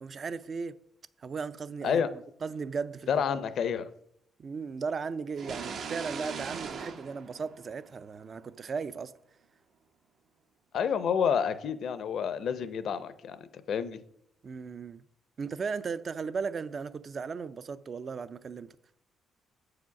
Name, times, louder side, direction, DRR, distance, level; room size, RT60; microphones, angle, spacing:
voice 1, 0.0-0.8 1.2-3.2 4.4-9.1 14.4-15.0 15.4-18.8, right 5 dB, 45° right, 0.4 m, -36 dB
voice 2, 3.1-3.9 10.7-13.4 13.7-14.0, left 7 dB, 65° left, 0.6 m, -29 dB
sound 1, 5.4-8.2, right 5 dB, 65° right, 0.7 m, -39 dB
7.7 x 5.0 x 5.7 m
cardioid pair, 90°, 0 cm